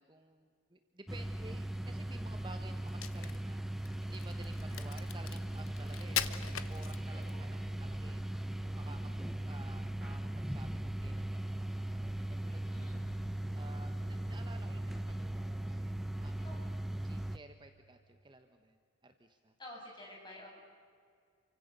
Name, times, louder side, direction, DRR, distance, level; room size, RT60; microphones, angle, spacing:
voice 1, 0.0-3.6 4.0-8.2 8.6-12.9 13.5-16.7 17.0-19.5, right 2 dB, 20° right, 6 dB, 1.2 m, -55 dB
sound 1, 1.1-17.4, right 1 dB, ahead, 0.7 m, -39 dB
Crack, 2.9-7.4, left 10 dB, 80° left, 1.1 m, -41 dB
voice 2, 7.3-7.9 8.8-9.3 12.7-13.2 16.4-16.7 19.6-20.5, left 1 dB, 20° left, -1 dB, 6.9 m, -52 dB
29.5 x 24.5 x 6.8 m, 2.3 s
head